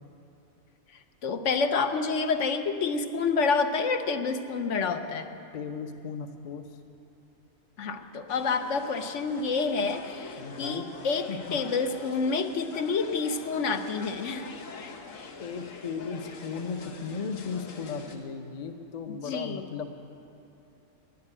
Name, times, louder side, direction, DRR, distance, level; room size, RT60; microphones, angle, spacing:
voice 1, 1.2-5.3 7.8-14.5 19.1-19.6, left 4 dB, 70° left, 7 dB, 1.0 m, -28 dB
voice 2, 5.5-6.8 10.4-10.9 11.3-11.6 15.4-19.9, left 5 dB, 40° left, 7 dB, 0.7 m, -36 dB
sound 1, 8.3-18.2, left 4 dB, 85° left, 1.5 m, -44 dB
11.5 x 10.0 x 9.9 m, 2.9 s
omnidirectional pair, 1.4 m